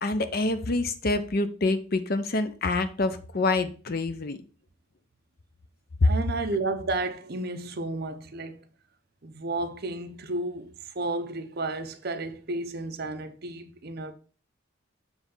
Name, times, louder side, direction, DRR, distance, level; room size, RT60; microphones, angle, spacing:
voice 1, 0.0-4.4 6.0-6.1, left 2 dB, 50° left, 0.6 m, -26 dB
voice 2, 6.0-8.7 9.2-14.1, right 2 dB, 50° right, 0.8 m, -32 dB
7.2 x 3.4 x 5.4 m
head